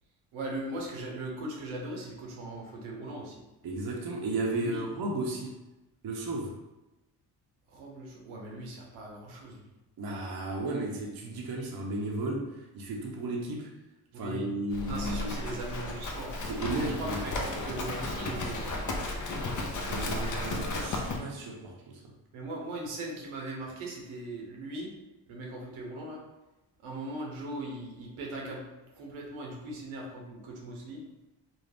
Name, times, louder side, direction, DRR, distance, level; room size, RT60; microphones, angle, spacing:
voice 1, 0.3-3.4 4.5-4.8 7.7-9.7 14.1-14.5 14.8-16.4 16.8-18.8 22.3-24.9 25.3-26.2 26.8-28.6 28.9-31.0, right 1 dB, 75° right, -1 dB, 0.8 m, -39 dB
voice 2, 3.6-5.6 6.0-6.5 10.0-13.7 14.2-15.4 16.5-17.2 19.9-22.1, right 2 dB, 45° right, 0 dB, 0.6 m, -34 dB
Livestock farm animals working animals, 14.7-21.2, left 2 dB, 40° left, 0.6 m, -34 dB
2.5 x 2.1 x 3.3 m, 1.0 s
supercardioid pair, 45°, 49 cm